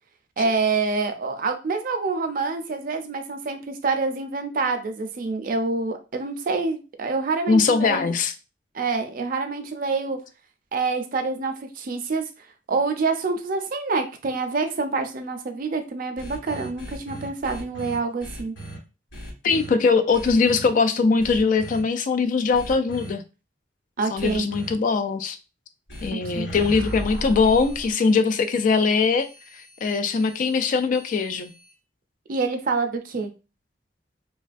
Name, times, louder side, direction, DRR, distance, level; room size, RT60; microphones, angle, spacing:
voice 1, 0.4-8.1 8.7-10.2 10.7-12.2 12.7-18.5 24.0-24.5 26.1-26.5 32.3-33.3, right 4 dB, 50° right, 0.4 m, -26 dB
voice 2, 7.5-8.3 19.4-23.2 24.1-25.4 26.0-29.3 29.8-31.5, left 4 dB, 45° left, 0.3 m, -21 dB
sound 1, 16.2-18.8 19.1-19.7 20.1-20.7 21.2-21.8 22.5-23.1 24.2-24.7 25.9-31.7, equal, 75° left, 1.1 m, -38 dB
3.1 x 2.3 x 2.5 m
head